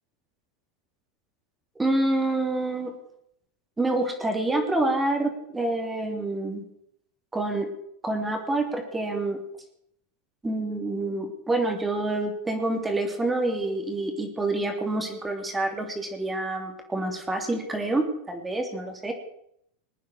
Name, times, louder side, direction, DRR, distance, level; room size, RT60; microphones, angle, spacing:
voice 1, 1.7-2.9 3.8-6.6 7.3-7.7 8.0-9.4 10.4-19.1, right 2 dB, 15° right, 4 dB, 3.2 m, -27 dB
20.5 x 9.3 x 6.4 m, 0.73 s
hypercardioid pair, 100°, 0 cm